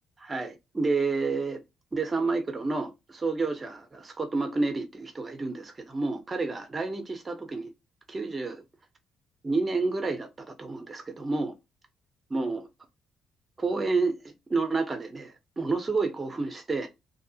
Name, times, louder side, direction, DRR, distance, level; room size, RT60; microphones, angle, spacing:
voice 1, 0.2-1.6 1.9-7.7 8.1-8.6 9.4-11.5 12.3-12.7 13.6-16.9, right 3 dB, 20° right, 0.7 m, -30 dB
2.7 x 2.0 x 2.6 m
cardioid pair, 140°, 0 cm